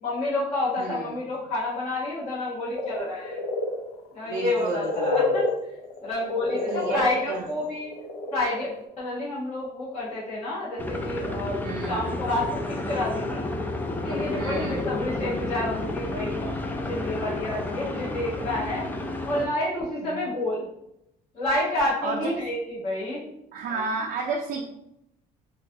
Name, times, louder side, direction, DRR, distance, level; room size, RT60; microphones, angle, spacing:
voice 1, 0.0-3.4 4.1-5.5 6.0-7.9 8.3-8.7 9.0-13.4 14.0-16.4 16.7-18.8 19.2-20.7 21.3-23.2, left 1 dB, 40° left, -10 dB, 1.2 m, -29 dB
voice 2, 0.8-1.2 4.2-5.4 6.7-7.5 11.6-12.1 14.4-14.9 20.0-20.1 22.0-22.4 23.5-24.6, right 4 dB, 60° right, 0 dB, 0.5 m, -32 dB
sound 1, 2.7-8.5 8.8-8.9, left 3 dB, 75° left, 0.5 m, -29 dB
sound 2, 10.8-19.5, left 2 dB, 10° left, 0.3 m, -31 dB
3.0 x 2.4 x 2.6 m, 0.80 s
cardioid pair, 110°, 17 cm